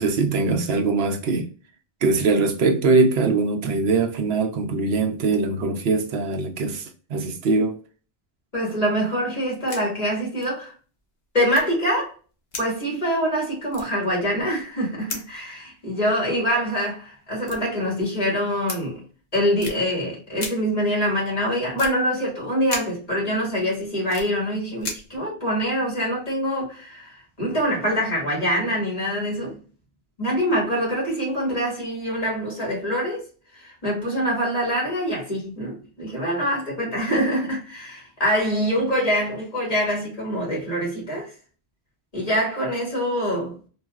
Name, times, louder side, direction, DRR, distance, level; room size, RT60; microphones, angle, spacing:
voice 1, 0.0-1.5 2.0-7.8, right 3 dB, 75° right, 0.9 m, -22 dB
voice 2, 8.5-10.7 11.3-12.1 12.6-19.0 19.3-29.6 30.2-33.2 33.5-41.3 42.1-43.6, equal, 35° left, 1.9 m, -25 dB
sound 1, 9.2-9.8 10.1-10.2 10.4-10.5 11.5-12.0 12.5-13.3 13.7-14.8 15.1-15.3 16.5-16.6 17.4-18.2 18.7-18.8 19.6-19.8 20.3-20.5 21.8-21.9 22.6-22.8 23.4-24.3 24.8-25.2, left 3 dB, 65° left, 1.1 m, -35 dB
4.0 x 2.4 x 2.3 m
omnidirectional pair, 1.1 m